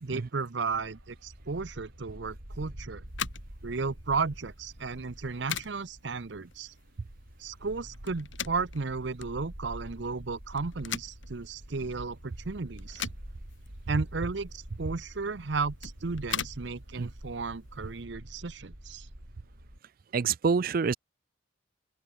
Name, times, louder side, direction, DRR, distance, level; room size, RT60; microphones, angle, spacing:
voice 1, 0.0-3.0 3.6-6.7 7.4-13.1 13.9-19.1, right 4 dB, 65° right, 0.8 m, -34 dB
Bark, 0.6-19.8, equal, 90° right, 4.6 m, -47 dB
sound 1, 3.0-18.0, left 8 dB, 85° left, 4.2 m, -42 dB
voice 2, 20.1-21.0, right 5 dB, 50° right, 0.4 m, -26 dB
open air
head